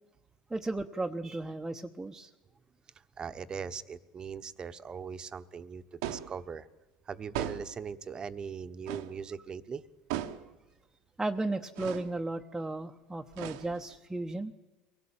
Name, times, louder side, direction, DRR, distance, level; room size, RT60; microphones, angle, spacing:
voice 1, 0.5-2.3 11.2-14.5, right 2 dB, 10° right, 2 dB, 1.0 m, -35 dB
voice 2, 2.9-6.7 7.0-9.8, right 6 dB, 30° right, 11 dB, 1.1 m, -40 dB
sound 1, 6.0-6.4 7.3-7.8 8.9-9.2 10.1-10.5 11.8-12.1 13.3-13.9, right 11 dB, 80° right, 1.2 m, -37 dB
23.5 x 17.5 x 8.8 m, 1.1 s
supercardioid pair, 100°, 3 cm